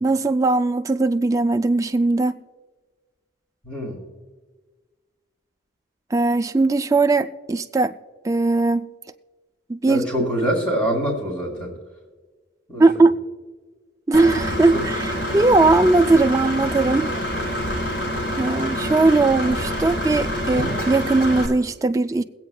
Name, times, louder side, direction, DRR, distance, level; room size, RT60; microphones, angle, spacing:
voice 1, 0.0-2.4 6.1-7.9 8.2-8.9 9.7-10.0 12.8-13.2 14.1-17.1 18.4-22.2, right 3 dB, 15° right, 0.3 m, -19 dB
voice 2, 3.6-4.0 9.9-11.7 12.7-12.8 14.7-14.8 18.5-18.6, right 1 dB, 30° left, 2.1 m, -25 dB
Engine / Mechanisms, 14.1-21.5, equal, 60° left, 1.8 m, -26 dB
23.0 x 8.4 x 2.3 m
head